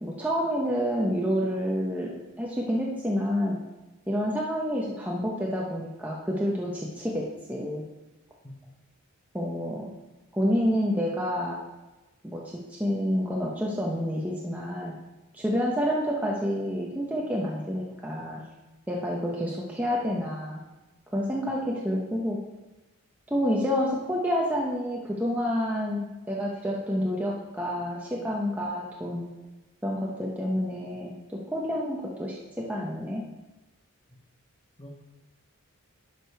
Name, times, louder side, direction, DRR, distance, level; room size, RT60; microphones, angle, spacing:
voice 1, 0.0-3.6 4.1-7.8 9.3-9.9 10.3-11.6 12.2-15.0 15.3-18.4 18.9-20.6 21.1-22.4 23.3-29.3 29.8-33.3, equal, 5° right, -3 dB, 0.8 m, -29 dB
voice 2, 8.4-8.7 34.1-34.2 34.8-35.0, equal, 25° left, 0 dB, 0.8 m, -46 dB
11.0 x 5.0 x 4.6 m, 1.1 s
head